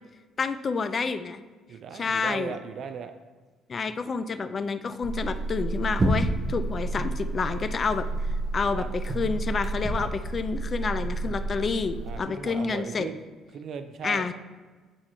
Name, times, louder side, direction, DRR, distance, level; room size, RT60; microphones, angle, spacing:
voice 1, 0.4-1.4 1.9-2.5 3.7-8.0 8.5-13.1 14.0-14.3, left 5 dB, 30° left, 9 dB, 0.3 m, -29 dB
voice 2, 1.7-3.1 8.7-8.9 9.9-10.1 12.1-13.2 13.5-14.3, right 6 dB, 55° right, 9 dB, 0.4 m, -37 dB
sound 1, 5.0-12.2, right 2 dB, 20° right, 0.7 m, -30 dB
8.7 x 4.2 x 3.0 m, 1.4 s
cardioid pair, 135°, 0 cm